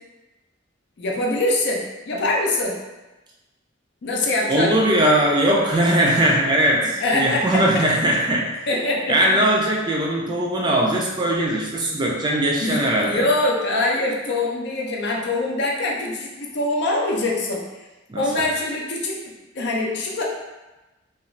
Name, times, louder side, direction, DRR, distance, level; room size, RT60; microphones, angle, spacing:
voice 1, 1.0-2.8 4.0-5.2 7.0-7.8 8.7-9.4 12.6-17.7 18.1-19.2 19.5-20.2, left 2 dB, 60° left, -2 dB, 0.5 m, -24 dB
voice 2, 4.5-8.5 9.1-13.3 18.1-18.2, right 1 dB, 25° right, -2 dB, 0.4 m, -20 dB
2.5 x 2.3 x 3.1 m, 1.1 s
head